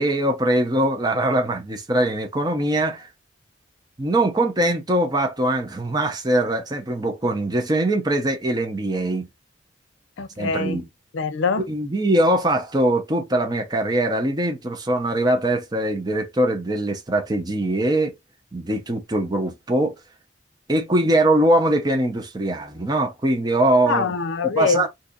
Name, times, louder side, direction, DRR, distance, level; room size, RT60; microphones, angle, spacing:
voice 1, 0.0-3.1 4.0-9.3 10.4-10.8 11.7-18.1 18.5-19.9 20.7-24.1 24.5-24.9, right 1 dB, 20° right, 0.6 m, -22 dB
voice 2, 10.2-10.8 11.1-11.7 23.9-24.9, left 4 dB, 85° left, 0.5 m, -24 dB
2.6 x 2.4 x 4.0 m
head